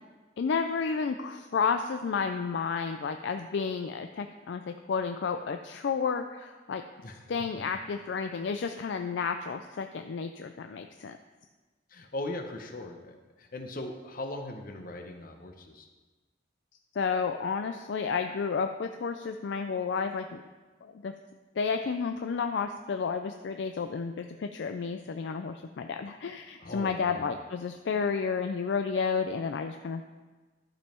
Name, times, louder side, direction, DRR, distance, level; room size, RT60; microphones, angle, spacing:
voice 1, 0.4-6.8 7.3-11.2 16.9-20.4 20.8-21.1 21.6-30.0, left 5 dB, 65° left, 7 dB, 0.4 m, -31 dB
voice 2, 11.9-15.9 26.6-27.4, left 2 dB, 50° left, 4 dB, 0.9 m, -39 dB
11.5 x 5.3 x 4.4 m, 1.3 s
head